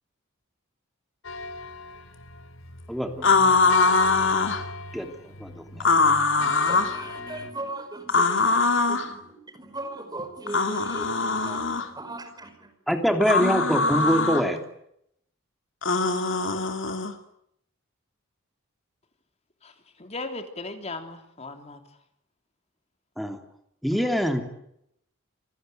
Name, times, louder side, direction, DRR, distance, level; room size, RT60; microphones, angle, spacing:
sound 1, 1.2-7.5, left 4 dB, 85° left, 3.6 m, -39 dB
voice 1, 2.9-3.6 4.9-5.1 5.4-5.9 12.9-14.6 23.2-23.4 23.8-24.4, equal, ahead, 3.2 m, -24 dB
sound 2, 3.2-4.6 5.8-7.0 8.1-9.1 10.5-11.9 13.2-14.4 15.8-17.1, left 3 dB, 65° left, 2.8 m, -22 dB
voice 2, 6.4-12.7, right 2 dB, 20° right, 5.2 m, -38 dB
voice 3, 20.0-21.8, left 2 dB, 30° left, 3.4 m, -37 dB
28.0 x 19.5 x 9.3 m
head